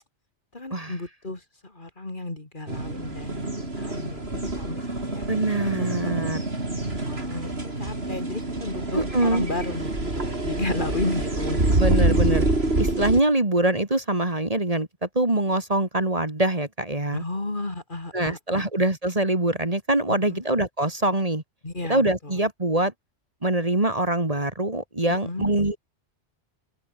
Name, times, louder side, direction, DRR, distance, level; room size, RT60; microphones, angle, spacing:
voice 1, 0.5-5.3 7.1-11.8 17.1-18.7 20.1-20.5 21.6-22.4 25.2-25.5, left 2 dB, 45° left, 3.3 m, -33 dB
sound 1, 2.7-13.2, right 2 dB, 60° right, 5.0 m, -26 dB
voice 2, 5.3-6.4 8.9-9.5 11.8-12.5 12.8-17.2 18.1-21.4 21.9-22.9 23.4-25.8, right 1 dB, 30° right, 2.7 m, -24 dB
open air
omnidirectional pair, 1.2 m